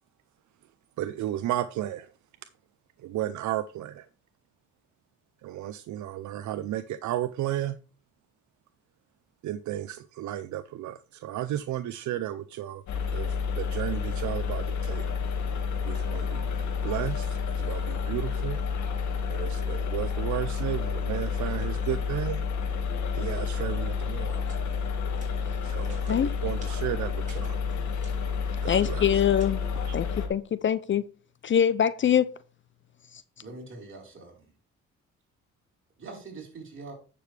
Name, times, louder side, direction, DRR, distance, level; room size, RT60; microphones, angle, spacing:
voice 1, 1.0-2.1 3.0-4.1 5.4-7.8 9.4-12.8 13.1-15.0 15.8-16.5 16.8-18.6 19.3-22.4 23.1-24.4 25.6-27.6 28.6-29.2 29.9-30.0, right 12 dB, 70° right, 0.6 m, -33 dB
sound 1, 12.9-30.3, left 6 dB, 70° left, 1.8 m, -30 dB
sound 2, 24.5-24.7 25.1-25.4 25.7-26.2 26.5-26.8 27.2-29.4, right 3 dB, 25° right, 3.4 m, -52 dB
voice 2, 28.7-29.6 29.9-31.1 31.4-32.3, left 9 dB, 40° left, 0.5 m, -24 dB
voice 3, 33.4-34.5 36.0-36.9, right 3 dB, 40° right, 4.2 m, -43 dB
10.0 x 6.8 x 3.3 m
cardioid pair, 90°, 30 cm